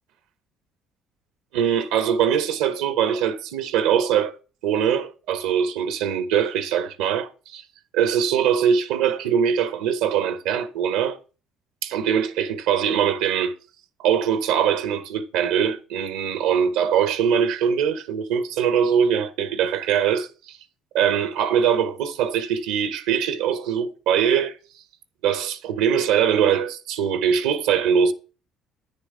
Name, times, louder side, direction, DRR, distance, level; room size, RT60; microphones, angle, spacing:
voice 1, 1.5-4.3 4.6-7.6 7.9-11.2 11.8-13.5 14.0-20.6 20.9-24.6 25.2-28.1, right 8 dB, 85° right, 0.7 m, -22 dB
9.5 x 6.7 x 3.7 m
supercardioid pair, 70°, 0 cm